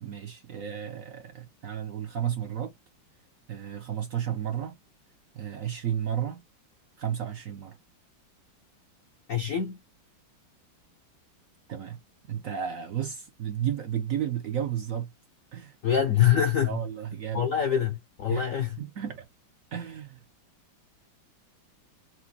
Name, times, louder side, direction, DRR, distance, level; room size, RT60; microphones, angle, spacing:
voice 1, 0.0-2.7 3.5-4.8 5.3-6.4 7.0-7.8 11.7-12.0 12.3-15.1 15.5-15.8 16.6-17.5 18.3-19.2 19.7-20.2, right 9 dB, 75° right, 0.7 m, -33 dB
voice 2, 9.3-9.8 15.8-16.8 17.3-18.8, left 9 dB, 70° left, 0.8 m, -25 dB
5.9 x 2.4 x 2.7 m
omnidirectional pair, 2.3 m